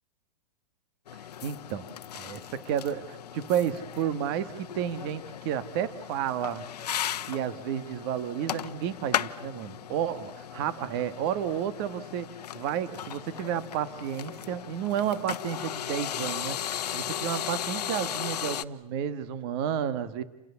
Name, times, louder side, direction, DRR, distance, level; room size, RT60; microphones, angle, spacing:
sound 1, 1.1-18.6, left 10 dB, 75° left, 1.1 m, -36 dB
voice 1, 1.4-6.6 7.3-20.2, right 9 dB, 35° right, 13 dB, 1.8 m, -31 dB
30.0 x 27.5 x 7.2 m, 0.89 s
hypercardioid pair, 155°, 20 cm